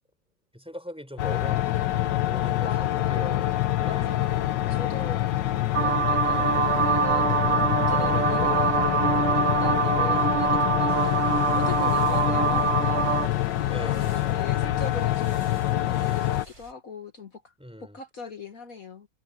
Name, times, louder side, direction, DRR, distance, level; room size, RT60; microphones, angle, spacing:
voice 1, 0.5-2.7 3.1-3.5 3.8-4.2 9.5-9.8 11.8-12.0 13.7-14.4 17.6-18.0, equal, 5° right, 4.9 m, -41 dB
sound 1, 1.2-16.5, left 14 dB, 85° left, 1.5 m, -26 dB
voice 2, 2.6-5.5 5.8-17.5 17.8-19.1, left 3 dB, 55° left, 2.0 m, -40 dB
sound 2, 5.7-13.3, right 7 dB, 50° right, 0.8 m, -24 dB
sound 3, 10.9-16.7, right 2 dB, 35° right, 4.1 m, -50 dB
omnidirectional pair, 1.9 m